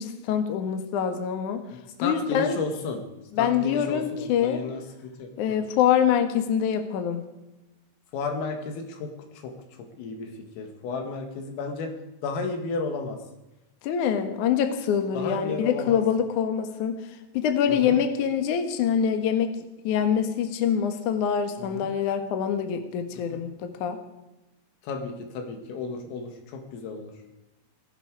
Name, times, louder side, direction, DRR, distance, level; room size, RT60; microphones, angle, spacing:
voice 1, 0.0-1.6 2.0-2.6 3.3-4.6 5.4-7.2 13.8-17.0 17.3-19.6 19.8-24.0, left 8 dB, 65° left, 6 dB, 2.1 m, -25 dB
voice 2, 2.0-3.0 3.4-4.8 5.2-5.6 8.1-9.1 9.4-9.5 10.0-10.3 10.6-11.9 12.2-13.2 15.1-16.0 17.7-18.0 21.6-21.9 23.3-23.4 24.8-27.1, left 4 dB, 85° left, 4 dB, 4.7 m, -33 dB
18.5 x 15.5 x 4.9 m, 1.0 s
omnidirectional pair, 5.8 m